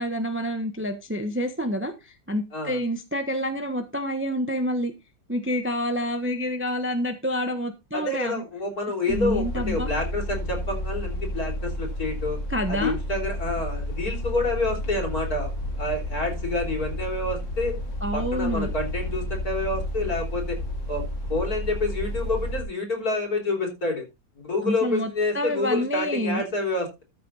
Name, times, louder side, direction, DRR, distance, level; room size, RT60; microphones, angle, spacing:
voice 1, 0.0-4.9 5.3-8.4 9.1-9.9 12.5-13.0 18.0-18.7 24.6-26.4, equal, 10° right, 7 dB, 1.0 m, -28 dB
voice 2, 7.9-12.4 12.7-15.5 15.8-17.8 18.1-20.6 20.9-21.0 21.3-24.0 24.4-27.0, left 2 dB, 55° left, 3 dB, 4.2 m, -28 dB
sound 1, 9.1-22.6, equal, 85° left, 2.9 m, -31 dB
13.0 x 6.6 x 4.1 m, 0.25 s
omnidirectional pair, 1.9 m